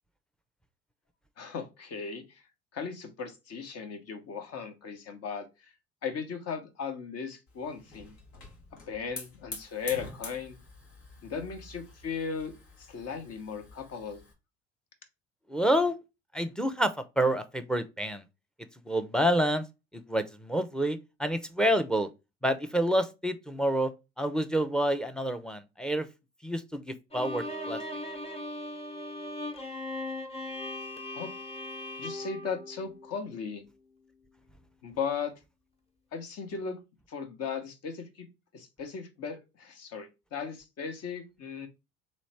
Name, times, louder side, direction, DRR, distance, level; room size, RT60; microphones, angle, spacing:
voice 1, 1.4-2.4 2.7-5.7 6.0-8.1 8.9-10.6 11.2-12.5 12.8-14.2 31.1-31.3 32.0-33.6 34.8-35.3 36.1-36.8 37.1-38.3 38.5-41.7, left 6 dB, 50° left, 1.1 m, -37 dB
Hiss / Fire, 7.5-14.3, left 3 dB, 75° left, 1.4 m, -47 dB
voice 2, 15.5-16.0 16.3-18.2 18.9-19.6 19.9-22.1 22.4-23.9 24.2-26.1 26.4-27.8, equal, ahead, 0.5 m, -28 dB
Bowed string instrument, 27.1-33.4, left 1 dB, 20° left, 1.2 m, -38 dB
3.2 x 3.1 x 4.3 m
hypercardioid pair, 65°, 32 cm